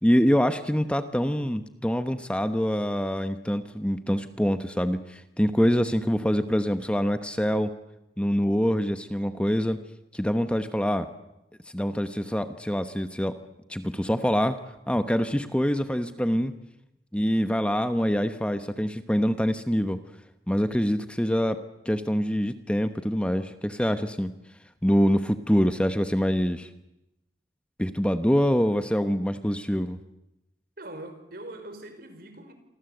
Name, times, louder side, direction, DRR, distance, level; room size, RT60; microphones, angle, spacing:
voice 1, 0.0-7.7 8.2-9.8 10.1-11.1 11.7-13.4 13.7-14.6 14.9-16.5 17.1-20.0 20.5-21.6 21.8-24.3 24.8-26.7 27.8-30.0, equal, 5° left, 9 dB, 1.1 m, -25 dB
voice 2, 30.8-32.5, right 1 dB, 55° right, 8 dB, 5.0 m, -42 dB
28.0 x 24.5 x 8.0 m, 0.89 s
head